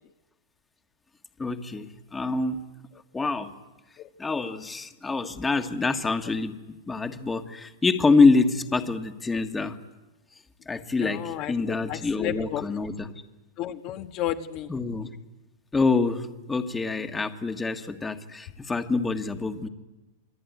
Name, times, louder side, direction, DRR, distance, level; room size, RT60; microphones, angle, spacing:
voice 1, 1.4-2.6 3.1-3.5 4.2-9.8 10.7-11.2 11.5-13.1 14.7-15.1 15.7-19.7, left 3 dB, 10° left, 7 dB, 1.6 m, -26 dB
voice 2, 11.0-12.6 13.6-14.7, left 12 dB, 40° left, 7 dB, 1.4 m, -32 dB
28.0 x 21.5 x 9.5 m, 1.1 s
supercardioid pair, 140°, 0 cm